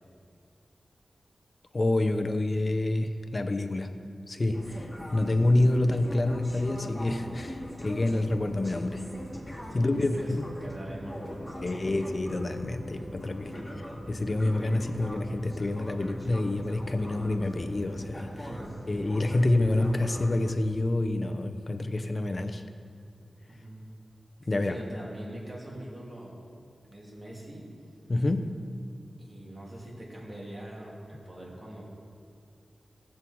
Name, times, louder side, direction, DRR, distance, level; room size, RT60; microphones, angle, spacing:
voice 1, 1.7-4.0 4.3-9.0 9.7-10.4 11.6-13.5 14.1-18.5 18.9-22.6 24.5-24.8 28.1-28.6, left 2 dB, 35° left, 7 dB, 0.8 m, -27 dB
sound 1, 4.5-20.5, left 1 dB, 5° left, 2.5 m, -41 dB
voice 2, 9.8-10.3 10.6-11.9 13.4-13.7 18.3-18.7 23.5-23.9 24.5-26.5 26.9-27.7 29.2-31.8, right 1 dB, 25° right, -5 dB, 3.1 m, -43 dB
19.0 x 7.7 x 4.7 m, 2.2 s
wide cardioid pair, 135°, 0 cm